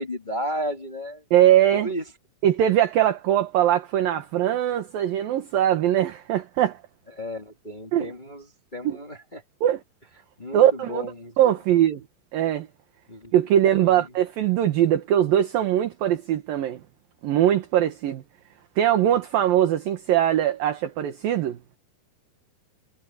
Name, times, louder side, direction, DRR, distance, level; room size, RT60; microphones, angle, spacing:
voice 1, 0.0-1.2 1.7-2.0 7.1-8.5 8.7-9.4 10.4-11.3 13.1-13.3 13.8-14.0, equal, 30° left, 0.8 m, -33 dB
voice 2, 1.3-1.9 2.4-6.8 7.9-8.1 8.8-9.0 9.6-9.8 10.5-11.1 11.4-12.0 12.3-12.7 13.3-16.8 17.2-18.2 18.8-21.6, right 11 dB, 65° right, 2.8 m, -21 dB
omnidirectional pair, 5.3 m